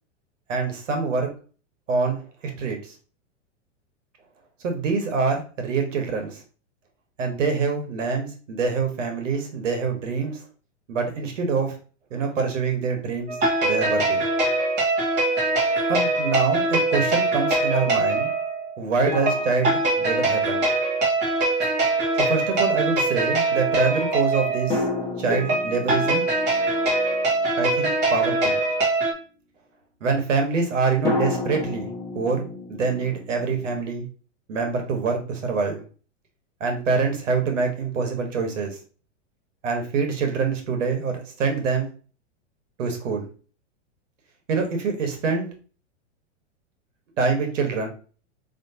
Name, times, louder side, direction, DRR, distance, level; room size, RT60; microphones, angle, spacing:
voice 1, 0.5-1.3 1.9-2.9 4.6-6.4 7.2-10.4 10.9-11.8 12.1-13.4 13.6-14.3 15.9-18.3 18.8-20.6 22.2-24.9 25.2-26.2 27.6-28.6 30.0-31.9 32.1-34.1 34.5-35.8 36.6-38.8 39.6-41.9 42.8-43.3 44.5-45.5 47.2-47.9, right 4 dB, 85° right, 4 dB, 1.4 m, -25 dB
sound 1, 13.3-29.1, right 2 dB, 25° right, 1.7 m, -23 dB
sound 2, 15.5-15.6 19.1-20.6 24.7-28.3 31.1-33.8, left 3 dB, 10° left, 1.2 m, -32 dB
5.3 x 3.0 x 2.8 m, 0.37 s
supercardioid pair, 145°, 37 cm